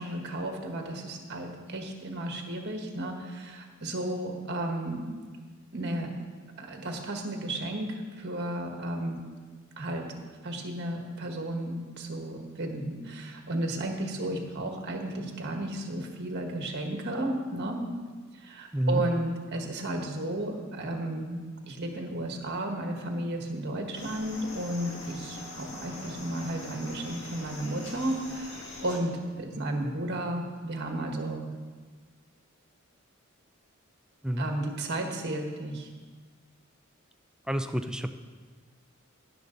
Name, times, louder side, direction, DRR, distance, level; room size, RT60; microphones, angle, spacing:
voice 1, 0.0-5.1 5.7-6.1 6.6-9.2 9.8-10.2 10.4-17.9 18.3-31.5 34.4-35.9, right 1 dB, 50° right, 3 dB, 1.5 m, -33 dB
voice 2, 18.7-19.0 34.2-34.5 37.5-38.2, right 1 dB, 5° right, 8 dB, 0.4 m, -28 dB
sound 1, 23.9-29.0, left 2 dB, 55° left, 2.0 m, -42 dB
17.5 x 6.8 x 3.9 m, 1.5 s
head